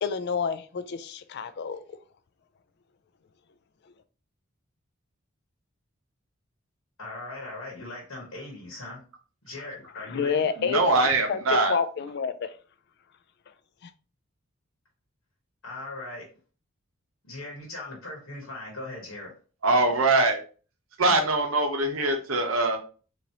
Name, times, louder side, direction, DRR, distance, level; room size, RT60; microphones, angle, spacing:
voice 1, 0.0-2.0 10.1-10.8 11.3-12.5 13.8-13.9, left 6 dB, 50° left, 0.4 m, -29 dB
voice 2, 7.0-9.0 9.4-10.5 15.6-16.3 17.2-19.3, left 2 dB, 85° left, 1.3 m, -39 dB
voice 3, 10.6-11.8 19.6-20.4 21.0-22.8, right 2 dB, 75° right, 0.8 m, -23 dB
3.9 x 3.0 x 2.8 m
head